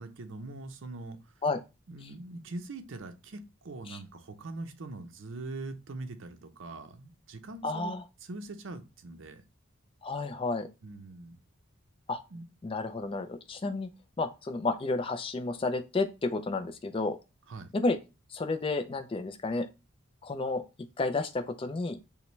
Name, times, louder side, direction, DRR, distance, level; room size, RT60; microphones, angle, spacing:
voice 1, 0.0-1.3 1.9-7.9 8.2-9.4 10.8-11.4 12.3-12.5 17.5-17.7, right 2 dB, 65° right, 7 dB, 0.6 m, -42 dB
voice 2, 7.6-8.0 10.0-10.7 12.1-12.2 12.6-13.9 14.2-17.2 17.7-18.0 18.3-19.7 20.2-22.0, left 3 dB, 25° left, 8 dB, 0.3 m, -31 dB
5.6 x 2.1 x 3.1 m, 0.27 s
head